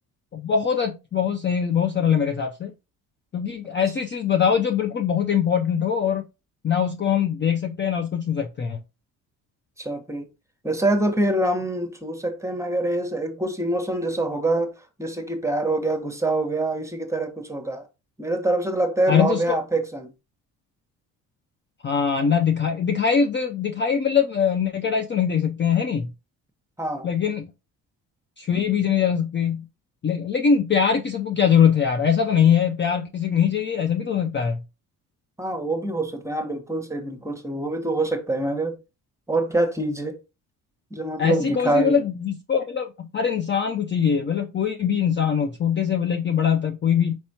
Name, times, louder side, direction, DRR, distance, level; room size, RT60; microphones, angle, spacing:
voice 1, 0.3-2.7 3.3-6.3 6.6-8.8 19.1-19.6 21.8-26.1 27.0-27.5 28.4-29.7 30.0-34.6 41.2-47.2, left 7 dB, 25° left, 0.5 m, -22 dB
voice 2, 9.8-10.3 10.6-14.7 15.0-17.8 18.2-20.1 26.8-27.1 35.4-38.8 39.3-40.2 40.9-42.0, right 2 dB, 5° right, 1.1 m, -25 dB
4.5 x 4.2 x 2.8 m
hypercardioid pair, 55°, 42 cm